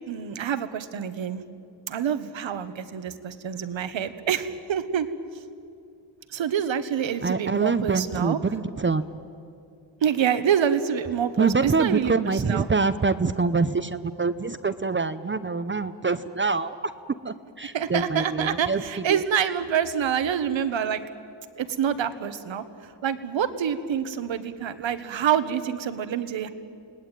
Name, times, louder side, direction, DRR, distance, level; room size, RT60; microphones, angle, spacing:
voice 1, 0.1-1.4 1.9-5.1 6.3-8.4 10.0-12.7 17.7-21.0 21.6-22.6 23.0-26.5, right 8 dB, 80° right, 11 dB, 1.4 m, -26 dB
voice 2, 7.2-9.1 11.4-16.9 17.2-18.8 19.1-19.2, right 4 dB, 25° right, 11 dB, 0.7 m, -25 dB
29.5 x 19.0 x 9.2 m, 2.5 s
wide cardioid pair, 110°, 45 cm